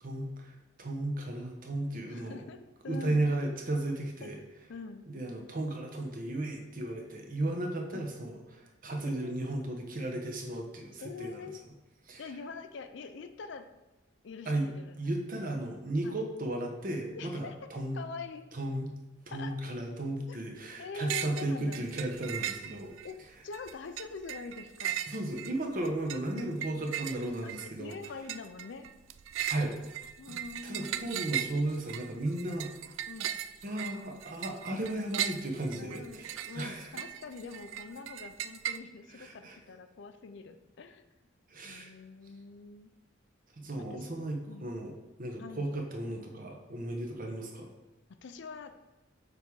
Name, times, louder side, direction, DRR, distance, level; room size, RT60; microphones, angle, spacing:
voice 1, 0.0-2.5 2.9-4.4 5.1-11.5 12.1-12.2 14.5-14.7 15.0-18.1 18.5-18.9 19.3-22.9 25.1-27.9 29.5-29.8 30.3-32.7 33.6-36.9 39.2-39.6 41.5-41.9 43.6-47.7, right 1 dB, 45° right, 2 dB, 1.0 m, -35 dB
voice 2, 2.1-3.3 4.2-4.3 4.7-5.1 7.9-8.1 9.0-9.5 11.0-11.6 12.2-13.7 14.2-15.0 16.0-16.2 17.1-18.4 19.3-19.5 20.3-20.4 20.8-21.8 22.8-23.2 23.4-25.0 26.3-26.6 27.4-27.5 27.8-28.9 30.2-31.3 33.1-33.4 35.8-41.0 41.6-42.9 43.9-44.0 44.5-44.8 45.4-45.7 48.2-48.8, left 4 dB, 65° left, 9 dB, 0.4 m, -44 dB
sound 1, 21.1-21.5 21.7-23.1 23.5-38.8, right 10 dB, 75° right, 0.3 m, -38 dB
6.6 x 3.5 x 4.6 m, 1.0 s
head